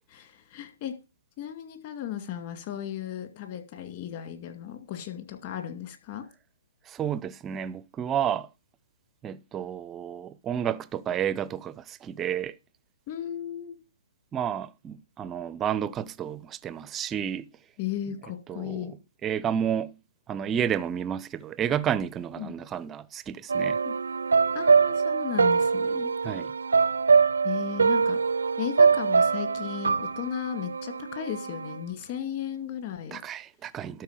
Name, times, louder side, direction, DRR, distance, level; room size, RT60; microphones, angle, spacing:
voice 1, 0.1-0.9 1.4-6.2 13.1-13.8 17.8-18.9 22.4-22.5 23.8-23.9 24.5-26.1 27.4-28.2 28.6-33.2, left 10 dB, 35° left, 2.1 m, -35 dB
voice 2, 6.9-8.5 9.2-12.5 14.3-17.5 18.5-18.9 19.2-19.9 20.3-23.8 26.2-26.5 33.1-34.0, right 9 dB, 15° right, 0.4 m, -31 dB
sound 1, 23.5-31.8, right 5 dB, 90° right, 0.5 m, -23 dB
12.5 x 4.3 x 8.1 m
hypercardioid pair, 155°, 0 cm